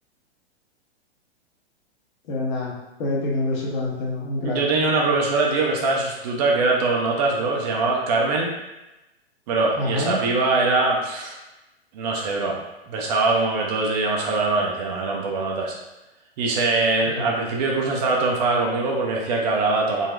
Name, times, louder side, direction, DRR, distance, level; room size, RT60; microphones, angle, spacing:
voice 1, 2.3-4.6 9.8-10.2 17.2-17.5, left 2 dB, 45° left, -3 dB, 0.9 m, -27 dB
voice 2, 4.4-8.5 9.5-11.4 11.9-12.6 12.9-15.7 16.4-20.1, right 3 dB, 40° right, -1 dB, 0.6 m, -22 dB
3.8 x 2.1 x 2.5 m, 0.99 s
hypercardioid pair, 110°, 32 cm